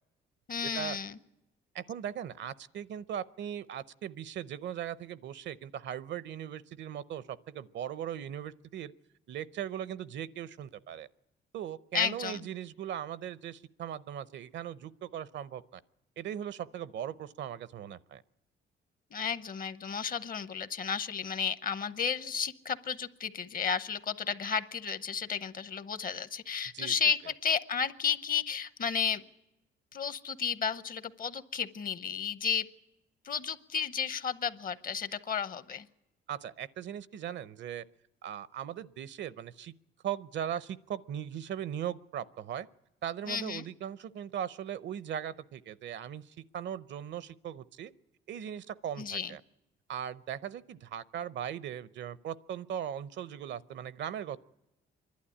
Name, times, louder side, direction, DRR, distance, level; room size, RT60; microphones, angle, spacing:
voice 1, 0.5-1.2 11.9-12.4 19.1-29.2 29.9-32.7 33.2-35.9 43.3-43.7 49.0-49.3, left 6 dB, 45° left, 14 dB, 0.8 m, -33 dB
voice 2, 1.7-8.9 9.3-11.1 11.5-15.8 16.2-18.2 26.7-26.9 36.3-37.8 38.2-39.7 40.0-42.7 43.0-47.9 48.3-49.4 49.9-54.4, right 9 dB, 65° right, 17 dB, 0.6 m, -39 dB
25.5 x 11.5 x 9.9 m, 0.97 s
cardioid pair, 90°, 20 cm